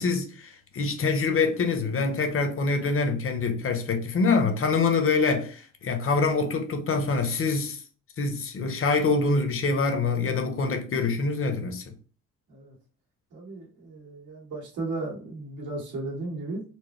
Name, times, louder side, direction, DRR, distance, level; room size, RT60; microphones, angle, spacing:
voice 1, 0.0-7.8 8.2-11.8, left 4 dB, 45° left, 0.9 m, -25 dB
voice 2, 13.3-16.6, right 2 dB, 80° right, 1.9 m, -35 dB
4.4 x 2.0 x 3.2 m
cardioid pair, 90°, 30 cm